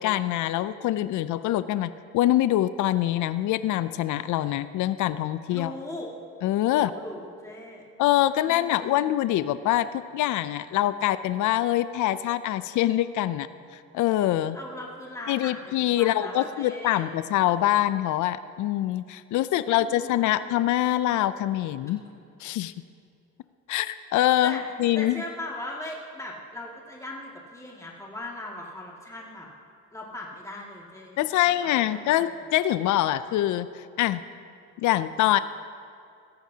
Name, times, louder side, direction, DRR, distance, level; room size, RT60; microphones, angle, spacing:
voice 1, 0.0-5.7 6.4-6.9 8.0-13.5 13.7-14.6 15.3-22.0 22.4-22.7 23.7-25.2 31.2-34.2 34.8-35.4, left 13 dB, 75° left, 14 dB, 0.5 m, -24 dB
voice 2, 5.5-6.1 6.7-7.9 8.4-9.1 14.5-17.1 19.5-20.3 24.4-24.6 25.0-29.5 29.9-31.2 31.6-32.4, left 1 dB, 10° left, -3 dB, 2.1 m, -39 dB
17.5 x 14.0 x 2.8 m, 2.4 s
cardioid pair, 90°, 30 cm